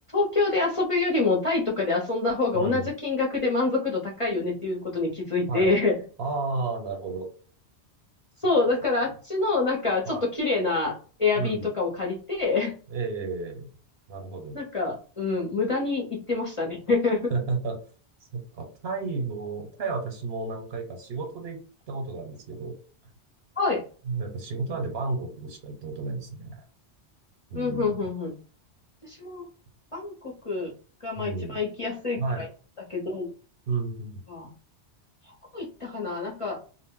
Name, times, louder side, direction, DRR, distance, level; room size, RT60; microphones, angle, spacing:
voice 1, 0.1-6.0 8.4-10.9 11.2-12.7 14.5-17.3 23.6-23.8 27.5-28.4 29.0-29.4 29.9-30.7 31.0-32.5 32.9-33.3 34.3-34.5 35.3-36.6, left 3 dB, 35° left, -3 dB, 0.6 m, -26 dB
voice 2, 2.5-2.9 5.5-5.7 6.2-7.3 10.1-10.2 11.4-11.7 12.9-13.7 14.1-14.6 17.3-17.8 18.3-21.6 21.9-22.8 24.1-26.6 27.5-27.9 31.2-31.6 32.2-32.5 33.7-34.2, right 3 dB, 65° right, 3 dB, 1.0 m, -32 dB
2.1 x 2.1 x 3.6 m, 0.40 s
omnidirectional pair, 1.1 m